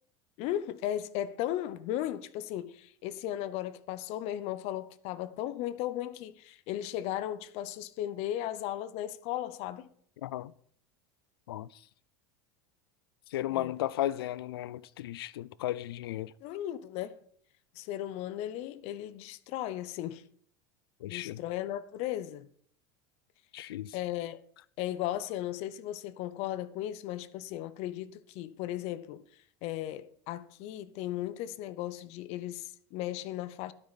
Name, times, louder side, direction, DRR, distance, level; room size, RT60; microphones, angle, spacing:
voice 1, 0.4-9.9 13.5-13.7 16.4-17.2 17.7-20.3 21.1-22.5 23.9-24.4 24.8-29.2 29.6-33.7, left 12 dB, 60° left, 0.8 m, -36 dB
voice 2, 10.2-10.5 11.5-11.7 13.3-16.3 21.0-21.4 23.5-24.0, left 14 dB, 90° left, 0.4 m, -35 dB
12.0 x 9.7 x 4.1 m
supercardioid pair, 100°, 12 cm